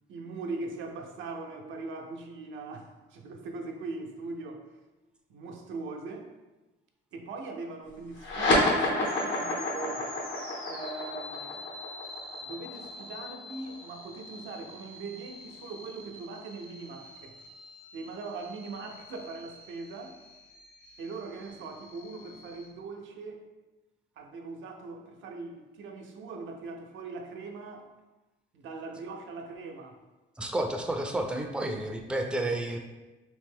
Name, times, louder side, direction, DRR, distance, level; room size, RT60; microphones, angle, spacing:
voice 1, 0.1-4.6 5.3-6.3 7.1-10.0 10.7-11.6 12.4-17.4 17.9-20.2 21.0-23.4 24.2-27.9 28.5-30.0, right 3 dB, 75° right, 3 dB, 0.5 m, -40 dB
sound 1, 8.2-15.0, left 1 dB, 70° left, 1.0 m, -30 dB
sound 2, 9.0-22.7, left 2 dB, 85° left, 1.4 m, -47 dB
voice 2, 30.4-32.8, right 1 dB, 5° right, 3 dB, 0.4 m, -31 dB
3.1 x 2.6 x 3.5 m, 1.1 s
cardioid pair, 90°, 20 cm